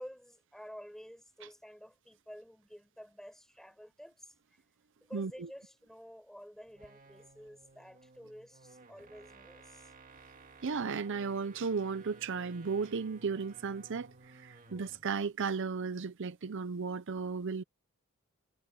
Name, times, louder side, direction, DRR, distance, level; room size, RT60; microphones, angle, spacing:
voice 1, 0.0-4.6 5.1-9.9 14.5-14.9, equal, ahead, 7.2 m, -51 dB
voice 2, 5.1-5.5 10.6-17.6, right 5 dB, 60° right, 0.6 m, -35 dB
sound 1, 6.7-15.1, right 3 dB, 40° right, 2.0 m, -57 dB
head